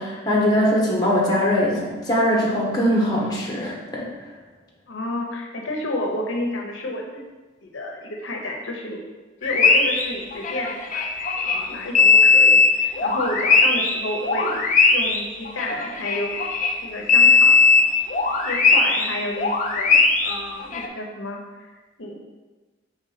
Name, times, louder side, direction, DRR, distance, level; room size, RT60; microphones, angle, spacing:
voice 1, 0.0-4.1, equal, 20° left, -4 dB, 1.3 m, -21 dB
voice 2, 4.9-7.2 7.6-9.0 9.4-11.0 11.4-14.6 14.9-16.4 16.8-17.7 18.4-22.2, left 1 dB, 75° left, 0 dB, 0.8 m, -31 dB
sound 1, 9.4-11.6 11.9-16.8 17.1-20.9, left 4 dB, 40° left, 0.6 m, -18 dB
5.1 x 3.5 x 5.6 m, 1.3 s
head